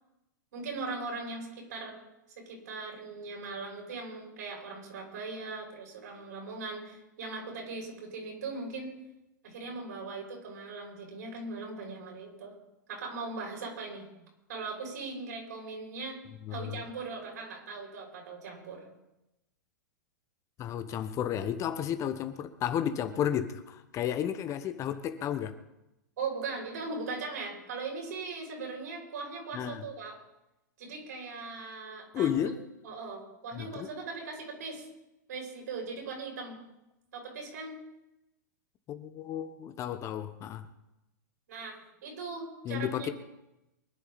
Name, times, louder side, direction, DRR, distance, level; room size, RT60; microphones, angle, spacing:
voice 1, 0.5-2.0 2.3-8.9 9.4-12.5 12.9-14.1 14.5-16.2 16.5-18.9 26.2-30.1 30.8-32.5 32.8-34.9 35.3-36.6 37.1-37.8 41.5-41.8 42.0-43.1, right 4 dB, 65° right, 0 dB, 6.9 m, -39 dB
voice 2, 16.4-16.8 20.6-25.5 29.5-29.8 32.1-32.6 33.5-33.9 38.9-40.7 42.6-43.1, left 10 dB, 30° left, 10 dB, 1.1 m, -32 dB
24.0 x 11.0 x 4.2 m, 0.93 s
figure-of-eight pair, 105°, 10 cm